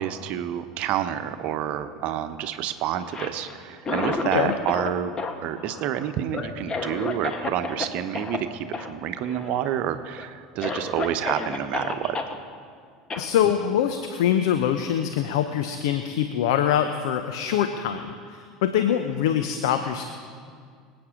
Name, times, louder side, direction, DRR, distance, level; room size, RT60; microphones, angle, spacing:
voice 1, 0.0-5.1 5.4-12.2, right 10 dB, 50° right, 10 dB, 1.0 m, -28 dB
Cough, 3.0-4.9 5.2-7.9 8.1-8.4 8.7-8.9 9.2-9.7 10.2-10.3 10.6-12.3 13.1-13.3, left 3 dB, 25° left, 1.5 m, -31 dB
voice 2, 13.2-20.1, left 9 dB, 65° left, 8 dB, 0.8 m, -24 dB
25.0 x 8.9 x 3.8 m, 2.1 s
figure-of-eight pair, 75°, 3 cm